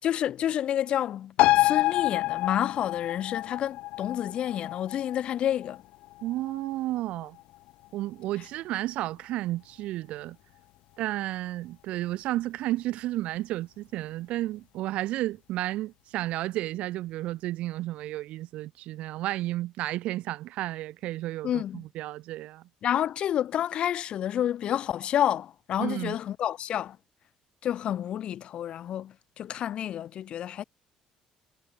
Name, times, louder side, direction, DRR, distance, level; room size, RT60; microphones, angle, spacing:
voice 1, 0.0-5.8 21.4-21.8 22.8-27.0 27.6-30.6, left 10 dB, 55° left, 3.8 m, -29 dB
sound 1, 1.4-8.3 8.7-8.8, left 18 dB, 85° left, 0.8 m, -28 dB
voice 2, 6.2-7.4 7.9-10.4 11.0-22.6 25.8-26.2, right 16 dB, 75° right, 2.9 m, -32 dB
cardioid pair, 135°, 2 cm